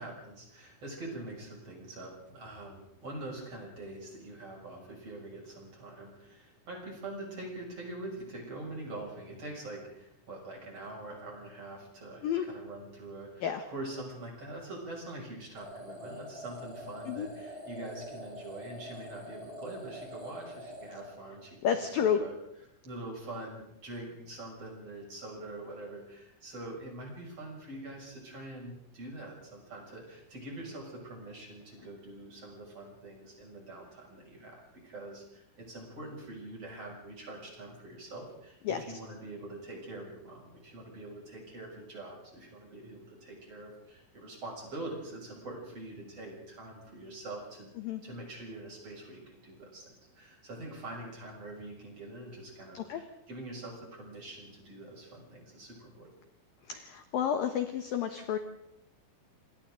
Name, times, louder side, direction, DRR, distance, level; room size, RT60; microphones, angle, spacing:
voice 1, 0.0-22.3 22.8-47.7 48.0-56.1, right 2 dB, 30° right, -1 dB, 7.3 m, -44 dB
sound 1, 15.5-21.7, equal, 10° right, 6.5 m, -45 dB
voice 2, 21.6-22.2 38.7-38.8 47.8-48.0 52.7-53.0 56.7-58.4, left 8 dB, 75° left, 7 dB, 2.2 m, -30 dB
27.0 x 25.5 x 3.9 m, 0.82 s
omnidirectional pair, 5.8 m